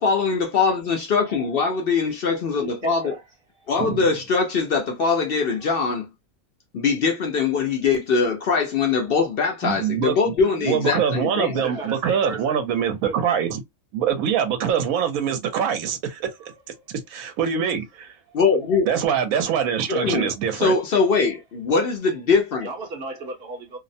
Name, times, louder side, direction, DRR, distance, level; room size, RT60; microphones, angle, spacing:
voice 1, 0.0-3.1 3.7-6.1 6.7-11.6 18.3-18.9 19.9-22.7, left 5 dB, 60° left, 0.6 m, -22 dB
voice 2, 2.6-3.2 11.6-12.7 13.0-13.2 16.4-16.9 18.3-18.4 22.6-23.8, right 3 dB, 55° right, 0.8 m, -36 dB
voice 3, 9.6-10.3 10.6-13.6 13.9-16.3 17.1-18.1 18.9-20.7, right 8 dB, 80° right, 1.1 m, -24 dB
2.7 x 2.0 x 2.5 m
omnidirectional pair, 1.5 m